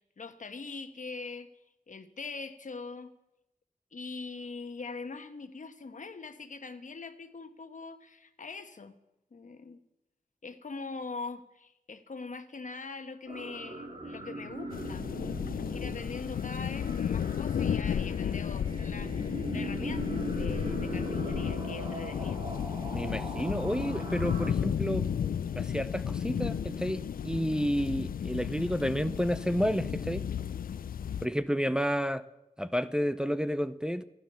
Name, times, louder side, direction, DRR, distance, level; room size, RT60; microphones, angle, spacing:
voice 1, 0.0-1.5 1.9-3.1 3.9-9.0 9.3-9.8 10.4-15.1 15.7-22.4, left 4 dB, 60° left, 1.3 m, -42 dB
sound 1, 13.3-24.5, right 2 dB, 45° right, 4.4 m, -40 dB
sound 2, 14.7-31.3, left 8 dB, 85° left, 0.4 m, -33 dB
voice 2, 22.9-25.1 25.6-30.2 31.2-32.2 32.6-34.0, equal, 5° right, 0.6 m, -30 dB
15.0 x 12.0 x 6.9 m
wide cardioid pair, 65°, 14 cm